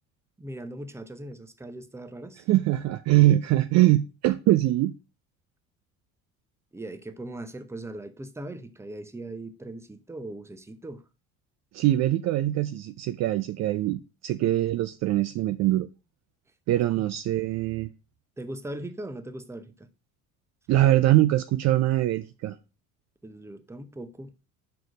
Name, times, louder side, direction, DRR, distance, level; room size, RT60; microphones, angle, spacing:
voice 1, 0.4-2.5 6.7-11.0 16.9-17.0 18.4-19.9 23.2-24.3, right 1 dB, 5° right, 0.8 m, -39 dB
voice 2, 2.5-4.9 11.7-15.9 16.7-17.9 20.7-22.6, right 15 dB, 40° right, 0.5 m, -23 dB
6.0 x 4.7 x 5.0 m
hypercardioid pair, 60°, 42 cm